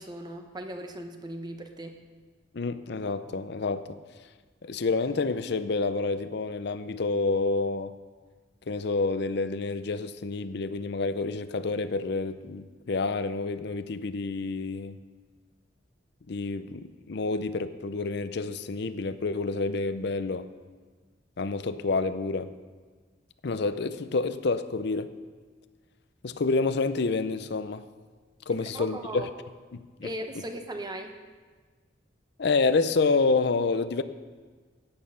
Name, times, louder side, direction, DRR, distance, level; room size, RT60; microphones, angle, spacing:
voice 1, 0.0-2.0 28.6-29.3 30.0-31.1, right 1 dB, 25° right, 1.0 m, -38 dB
voice 2, 2.5-4.0 4.6-7.9 8.7-15.0 16.3-20.5 21.4-22.5 23.4-25.1 26.2-27.9 28.5-29.3 29.7-30.1 32.4-34.0, left 3 dB, 65° left, 0.6 m, -28 dB
14.5 x 8.7 x 5.6 m
head